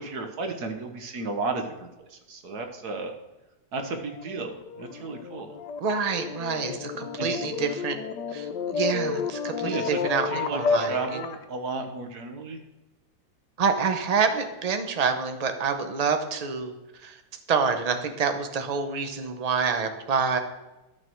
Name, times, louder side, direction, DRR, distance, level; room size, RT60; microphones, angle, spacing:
voice 1, 0.0-3.1 3.7-5.5 7.2-7.5 9.6-10.0 10.3-12.6, right 3 dB, 60° right, 5 dB, 1.6 m, -33 dB
sound 1, 4.1-11.4, left 5 dB, 70° left, 1.4 m, -31 dB
voice 2, 5.8-8.0 8.3-11.2 13.6-17.2 17.5-20.4, right 5 dB, 35° right, 7 dB, 0.6 m, -27 dB
12.0 x 6.6 x 4.5 m, 1.0 s
omnidirectional pair, 2.0 m